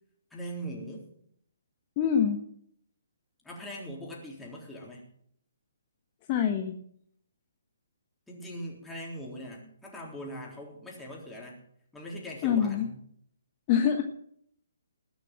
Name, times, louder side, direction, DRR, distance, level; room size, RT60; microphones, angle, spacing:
voice 1, 0.3-1.1 3.4-5.0 8.3-11.6 11.9-13.0, equal, 5° left, -3 dB, 3.7 m, -41 dB
voice 2, 2.0-2.4 6.3-6.7 12.4-12.9 13.7-14.0, left 8 dB, 30° left, 4 dB, 1.2 m, -25 dB
20.0 x 6.8 x 7.4 m, 0.67 s
figure-of-eight pair, 135°, 0 cm